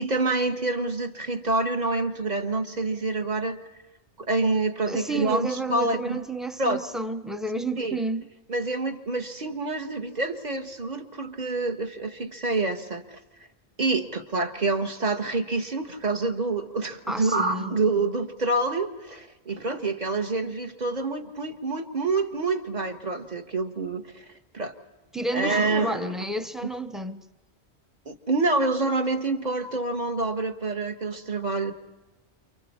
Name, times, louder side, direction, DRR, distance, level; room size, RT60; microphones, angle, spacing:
voice 1, 0.0-3.6 4.2-6.2 6.6-6.8 7.8-8.0 8.5-13.2 13.8-24.2 24.5-24.7 25.3-26.1 28.1-31.7, right 3 dB, 40° right, 1.3 m, -27 dB
voice 2, 4.9-8.3 17.1-17.8 25.1-27.2, right 2 dB, ahead, 0.6 m, -31 dB
29.0 x 28.5 x 4.3 m
omnidirectional pair, 1.2 m